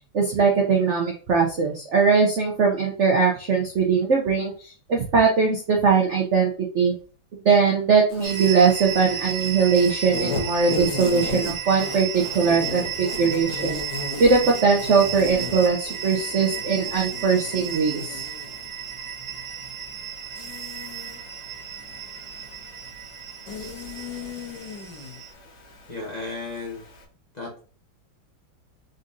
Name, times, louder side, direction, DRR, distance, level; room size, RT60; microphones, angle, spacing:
voice 1, 0.1-6.5 6.7-6.9 7.4-13.8 14.2-18.2, right 5 dB, 70° right, 0 dB, 0.6 m, -20 dB
Insect, 8.1-27.0, left 4 dB, 60° left, 1.5 m, -37 dB
sound 1, 8.2-25.3, right 8 dB, 90° right, 1.7 m, -34 dB
voice 2, 25.9-26.8 27.3-27.6, left 3 dB, 25° left, -3 dB, 1.0 m, -34 dB
4.0 x 3.9 x 2.6 m, 0.38 s
omnidirectional pair, 2.2 m